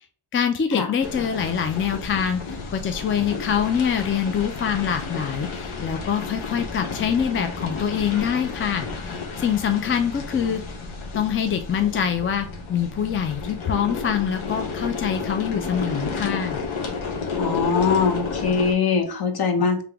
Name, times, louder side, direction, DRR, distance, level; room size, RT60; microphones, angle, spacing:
voice 1, 0.3-10.6 11.1-16.6, left 8 dB, 30° left, 7 dB, 0.3 m, -25 dB
sound 1, 1.0-18.7, left 4 dB, 90° left, 0.9 m, -31 dB
voice 2, 17.4-19.8, left 5 dB, 50° left, 7 dB, 0.8 m, -22 dB
3.3 x 2.9 x 3.4 m, 0.43 s
cardioid pair, 100°, 48 cm